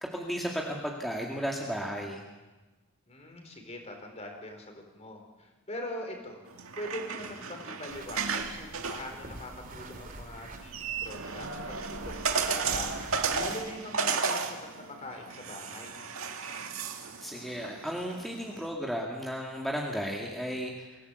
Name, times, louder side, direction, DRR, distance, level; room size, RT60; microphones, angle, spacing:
voice 1, 0.0-2.2 17.2-20.9, equal, ahead, -1 dB, 2.2 m, -34 dB
voice 2, 3.1-6.5 6.8-16.0, left 1 dB, 30° left, 3 dB, 4.4 m, -42 dB
sound 1, 6.5-18.7, right 5 dB, 75° right, 2.1 m, -35 dB
sound 2, 7.9-13.5, right 2 dB, 40° right, 2.7 m, -46 dB
24.5 x 17.0 x 8.3 m, 1.2 s
head